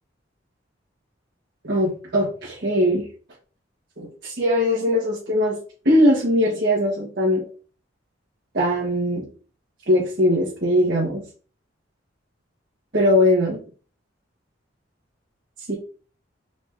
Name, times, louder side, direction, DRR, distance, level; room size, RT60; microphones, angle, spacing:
voice 1, 1.6-3.1 4.0-5.6 5.8-7.4 8.5-9.3 9.9-11.2 12.9-13.6 15.7-15.8, left 1 dB, 60° right, -6 dB, 1.4 m, -20 dB
3.9 x 3.5 x 3.5 m, 0.39 s
head